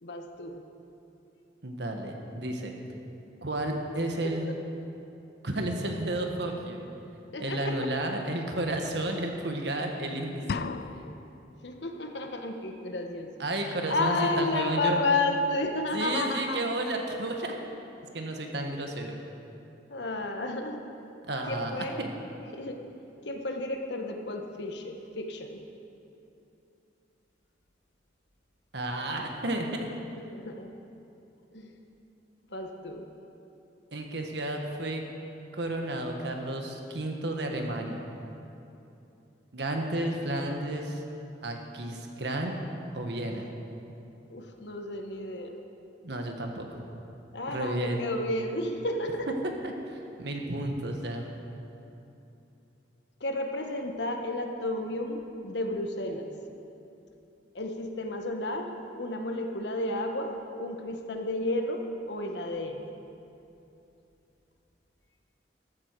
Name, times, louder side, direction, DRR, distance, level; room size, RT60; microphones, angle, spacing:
voice 1, 0.0-0.6 7.3-7.7 11.6-13.3 13.9-16.6 19.9-20.8 21.5-21.9 22.5-22.8 23.2-25.6 30.3-30.7 31.5-31.7 32.5-33.0 44.3-45.5 47.3-49.3 53.2-56.3 57.5-58.7 58.9-60.3 60.6-61.8 62.1-62.8, left 2 dB, 70° left, 4 dB, 1.2 m, -32 dB
voice 2, 1.6-2.7 3.4-4.5 5.4-6.8 7.4-10.7 13.4-15.0 15.9-17.5 18.1-19.2 21.3-22.1 28.7-29.7 33.9-35.0 35.5-38.1 39.5-41.0 41.4-42.6 42.9-43.5 46.0-46.8 47.5-48.0 49.6-51.3, right 1 dB, 70° right, 3 dB, 1.5 m, -32 dB
sound 1, 10.5-11.5, left 5 dB, 55° left, 0.4 m, -35 dB
14.0 x 13.0 x 4.7 m, 2.8 s
head